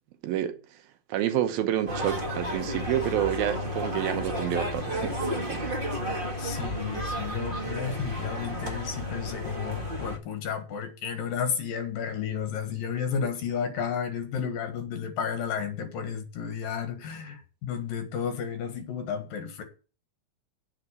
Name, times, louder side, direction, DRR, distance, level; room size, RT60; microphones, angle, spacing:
voice 1, 0.2-0.6 1.1-5.2 5.4-5.8, right 11 dB, 80° right, 2.9 m, -28 dB
sound 1, 1.9-10.2, equal, 60° right, 0.5 m, -32 dB
voice 2, 6.4-19.6, left 7 dB, 75° left, 3.2 m, -32 dB
8.0 x 7.0 x 8.3 m
omnidirectional pair, 4.1 m